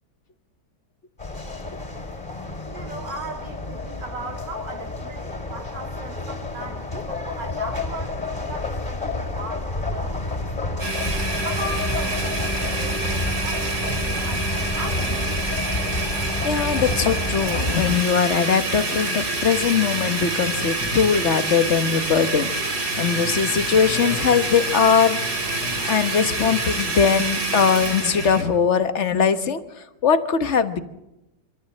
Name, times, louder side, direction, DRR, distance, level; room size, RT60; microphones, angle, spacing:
sound 1, 1.2-18.0, left 2 dB, 25° left, 4.5 m, -29 dB
voice 1, 2.7-10.9 11.4-15.4, right 2 dB, 80° right, 3 dB, 3.2 m, -38 dB
Domestic sounds home sounds, 10.8-28.4, right 2 dB, 65° right, 3.6 m, -27 dB
voice 2, 16.4-22.5 23.0-25.2 25.8-30.8, left 6 dB, 45° left, 9 dB, 1.4 m, -21 dB
sound 2, 19.3-28.2, left 3 dB, 70° left, 2.8 m, -40 dB
25.5 x 14.5 x 7.8 m, 0.92 s
omnidirectional pair, 1.9 m